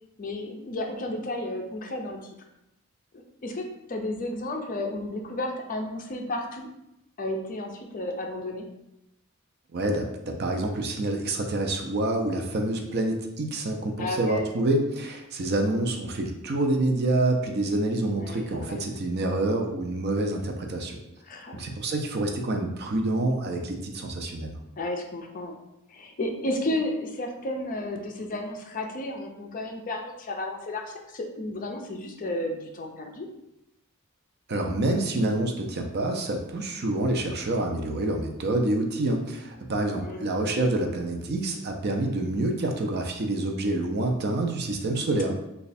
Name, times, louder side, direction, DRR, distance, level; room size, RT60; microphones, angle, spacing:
voice 1, 0.2-2.3 3.1-6.7 7.2-8.7 14.0-14.5 18.2-18.8 21.2-21.7 24.8-25.6 25.9-33.3 40.0-40.7, left 1 dB, 40° left, 3 dB, 0.4 m, -33 dB
voice 2, 9.7-21.0 21.5-24.6 34.5-45.4, right 2 dB, 45° right, 3 dB, 0.5 m, -27 dB
3.2 x 2.3 x 4.1 m, 0.88 s
head